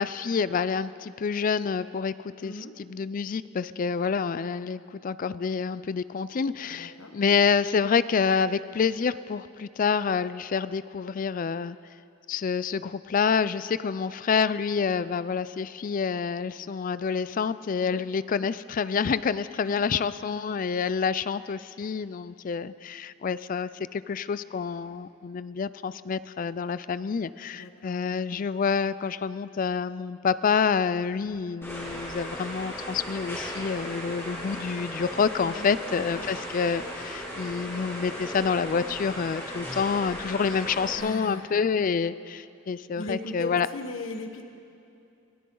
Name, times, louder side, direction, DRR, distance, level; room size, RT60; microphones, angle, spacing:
voice 1, 0.0-11.8 12.3-43.7, left 6 dB, 40° left, 16 dB, 0.4 m, -28 dB
voice 2, 2.4-2.7 6.7-7.1 17.8-18.0 19.6-20.1 27.5-28.0 35.4-36.3 41.0-41.5 42.9-44.4, left 2 dB, 75° left, 5 dB, 1.3 m, -38 dB
sound 1, 31.6-41.0, equal, 10° left, 2.4 m, -37 dB
20.5 x 16.5 x 3.9 m, 2.6 s
head